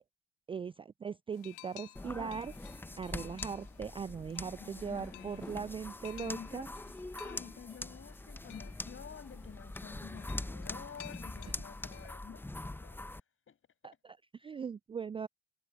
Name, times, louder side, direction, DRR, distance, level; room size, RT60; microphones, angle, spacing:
voice 1, 0.5-2.5 3.0-6.7 13.8-15.3, right 6 dB, 15° right, 0.4 m, -40 dB
sound 1, 1.3-12.1, left 26 dB, 60° left, 1.6 m, -56 dB
sound 2, 2.0-13.2, left 2 dB, 5° left, 0.9 m, -43 dB
voice 2, 3.0-3.4 4.6-5.6 6.2-6.7 7.2-13.6, left 7 dB, 35° left, 6.4 m, -50 dB
figure-of-eight pair, 60°, 35 cm